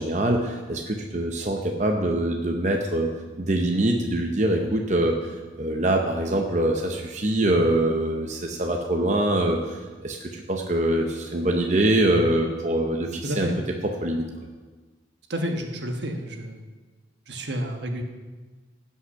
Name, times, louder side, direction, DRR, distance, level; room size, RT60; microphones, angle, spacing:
voice 1, 0.0-3.1 3.4-5.2 5.6-13.5 14.0-14.3, right 1 dB, 40° right, 2 dB, 0.8 m, -24 dB
voice 2, 13.2-13.6 15.3-16.6 17.3-18.0, equal, 70° right, 4 dB, 1.3 m, -30 dB
16.0 x 5.6 x 5.7 m, 1.3 s
head